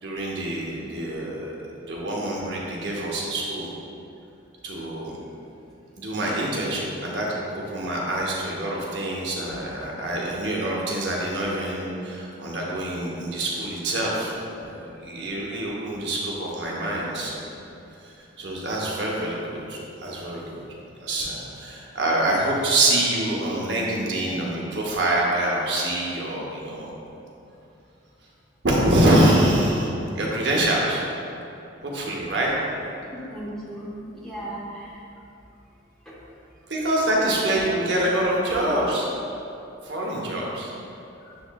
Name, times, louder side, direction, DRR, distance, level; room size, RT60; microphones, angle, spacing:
voice 1, 0.0-1.5 1.9-3.7 4.6-5.1 6.0-14.3 14.6-17.5 18.0-20.6 21.0-26.9 28.6-31.0 31.8-32.5 36.7-39.1 39.8-40.7, right 1 dB, 60° right, -3 dB, 0.8 m, -25 dB
voice 2, 31.8-32.2 33.1-35.0 36.1-36.2 39.5-39.7 41.2-41.4, right 1 dB, 5° left, -7 dB, 0.7 m, -37 dB
6.9 x 3.0 x 2.2 m, 2.7 s
head